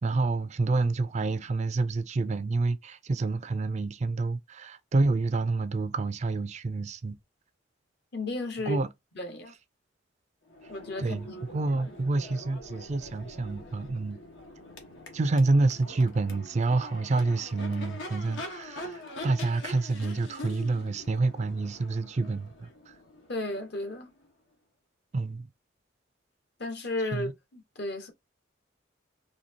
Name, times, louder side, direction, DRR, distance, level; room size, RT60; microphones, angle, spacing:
voice 1, 0.0-7.1 8.7-8.9 11.0-14.2 15.1-23.0 25.1-25.5 27.1-27.3, right 3 dB, 35° right, 0.4 m, -28 dB
voice 2, 8.1-8.8 9.1-9.5 10.7-11.4 23.3-24.1 26.6-28.1, left 2 dB, 60° left, 1.2 m, -34 dB
Crowd / Race car auto racing / Accelerating revving vroom, 10.5-24.3, left 1 dB, 75° left, 1.2 m, -44 dB
4.2 x 2.8 x 2.8 m
head